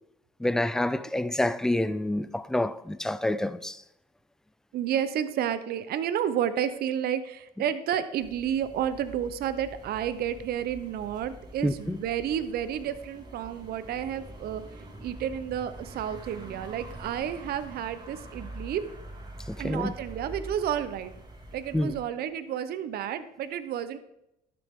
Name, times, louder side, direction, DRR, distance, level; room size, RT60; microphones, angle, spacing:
voice 1, 0.4-3.8 11.6-12.0 19.5-19.9 21.7-21.9, left 1 dB, 5° left, 0.3 m, -28 dB
voice 2, 4.7-14.6 15.0-18.8 19.6-21.1 21.5-24.0, right 9 dB, 65° right, 0.8 m, -31 dB
sound 1, 8.2-22.0, right 1 dB, 25° right, 2.2 m, -45 dB
12.0 x 6.9 x 3.6 m
cardioid pair, 110°, 17 cm